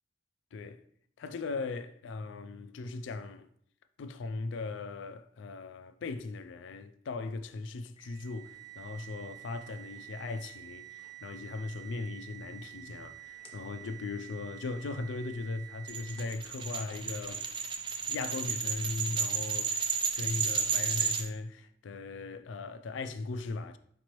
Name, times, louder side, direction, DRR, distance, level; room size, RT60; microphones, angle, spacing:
voice 1, 0.5-0.8 1.2-3.5 4.0-17.4 18.1-23.8, left 3 dB, 80° left, 0.4 m, -38 dB
sound 1, 8.0-16.5, right 14 dB, 30° left, 0.6 m, -49 dB
sound 2, 15.9-21.2, right 6 dB, 25° right, 0.4 m, -32 dB
5.0 x 3.1 x 3.0 m
head